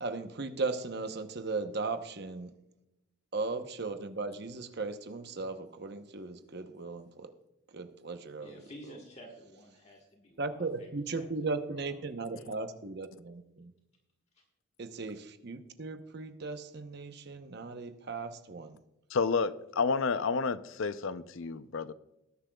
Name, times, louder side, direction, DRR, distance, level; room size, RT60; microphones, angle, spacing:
voice 1, 0.0-2.5 3.3-7.3 7.7-8.7 10.4-13.7 14.8-18.8, right 3 dB, 50° right, 0.8 m, -37 dB
voice 2, 8.4-11.3 11.7-12.6 14.3-14.4, equal, 30° left, 1.5 m, -52 dB
voice 3, 19.1-21.9, left 4 dB, 70° left, 0.5 m, -30 dB
19.5 x 10.0 x 2.3 m
head